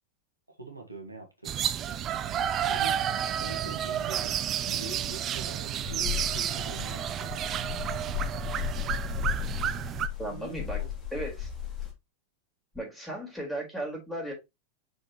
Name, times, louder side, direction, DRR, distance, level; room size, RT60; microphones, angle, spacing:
voice 1, 0.5-1.7 2.6-3.0 3.4-4.4 4.7-7.4 10.2-10.9, right 2 dB, 85° right, 2.0 m, -43 dB
sound 1, 1.4-10.1, right 9 dB, 30° right, 0.6 m, -31 dB
sound 2, 5.8-11.9, left 10 dB, 20° left, 3.0 m, -35 dB
voice 2, 10.2-10.8 11.1-11.5 12.7-14.3, right 1 dB, 5° left, 4.4 m, -35 dB
6.5 x 5.5 x 3.0 m
figure-of-eight pair, 90°, 0 cm